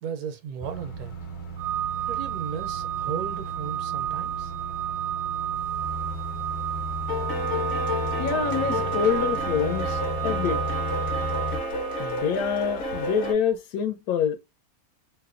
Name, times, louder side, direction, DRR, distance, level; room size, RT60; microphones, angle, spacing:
voice 1, 0.0-1.1 2.1-4.5, right 7 dB, 90° right, 1.1 m, -35 dB
sound 1, 0.6-11.6, equal, 35° left, 0.4 m, -35 dB
Organ, 1.6-12.3, right 11 dB, 70° right, 0.6 m, -32 dB
sound 2, 5.8-6.2 6.5-13.3, left 1 dB, 55° left, 0.9 m, -31 dB
voice 2, 8.2-10.6 12.0-14.4, left 7 dB, 85° left, 1.1 m, -26 dB
2.9 x 2.0 x 2.4 m
omnidirectional pair, 1.5 m